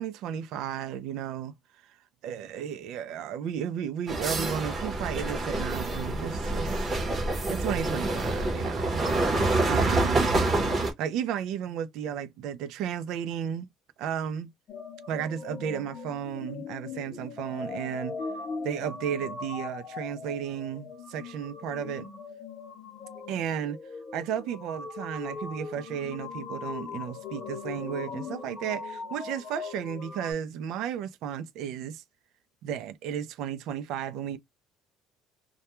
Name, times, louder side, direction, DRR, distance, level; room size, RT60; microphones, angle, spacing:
voice 1, 0.0-1.5 2.2-6.8 7.5-9.0 9.7-10.4 11.0-13.7 14.0-14.5 15.1-18.2 18.6-22.1 23.3-23.8 24.1-32.0 32.6-34.4, right 9 dB, 60° right, 0.4 m, -33 dB
sound 1, 4.1-10.9, right 2 dB, 20° right, 0.8 m, -27 dB
sound 2, 14.7-30.3, left 5 dB, 35° left, 0.7 m, -40 dB
2.2 x 2.2 x 2.9 m
cardioid pair, 170°, 0 cm